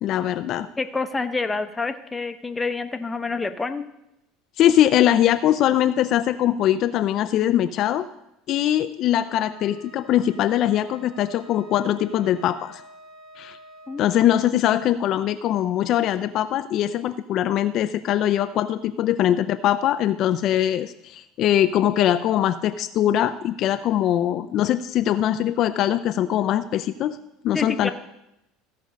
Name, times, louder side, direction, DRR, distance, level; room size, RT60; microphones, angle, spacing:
voice 1, 0.0-0.7 4.6-8.1 8.5-12.8 13.4-13.6 14.0-27.2 27.4-27.9, left 11 dB, 50° left, 10 dB, 0.4 m, -22 dB
voice 2, 0.8-3.8 13.9-14.0 27.5-27.9, left 3 dB, 15° left, 8 dB, 0.8 m, -27 dB
Wind instrument woodwind instrument, 9.3-14.1, right 1 dB, 35° right, 2.0 m, -48 dB
15.5 x 5.3 x 5.2 m, 0.86 s
supercardioid pair, 110°, 0 cm